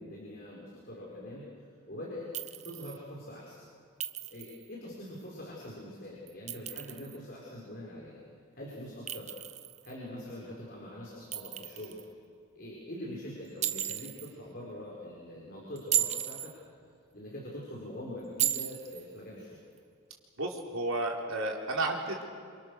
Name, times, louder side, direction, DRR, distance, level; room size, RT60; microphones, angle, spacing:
voice 1, 0.0-1.5 1.9-3.7 4.3-8.2 8.6-9.4 9.8-12.0 12.5-16.6 17.1-19.6, left 1 dB, 45° left, -4 dB, 5.3 m, -43 dB
Chink clink, 2.3-3.0 4.0-4.6 6.3-7.2 9.1-9.9 11.3-12.1 13.6-14.3 15.8-16.5 18.4-19.0, right 11 dB, 30° right, 0.7 m, -34 dB
voice 2, 20.4-22.2, right 2 dB, 65° right, 0 dB, 4.1 m, -32 dB
28.0 x 27.0 x 6.7 m, 2.3 s
head